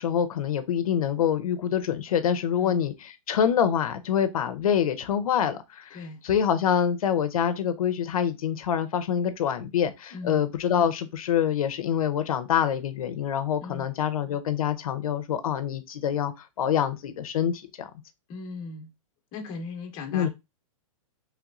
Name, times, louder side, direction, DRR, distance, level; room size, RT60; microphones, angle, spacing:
voice 1, 0.0-6.0 6.2-17.9 20.1-20.3, left 9 dB, 85° left, 0.5 m, -26 dB
voice 2, 5.9-6.2 10.1-10.4 13.6-13.9 18.3-18.9 19.3-20.3, left 4 dB, 25° left, 0.7 m, -38 dB
3.1 x 2.9 x 2.4 m
hypercardioid pair, 160°, 18 cm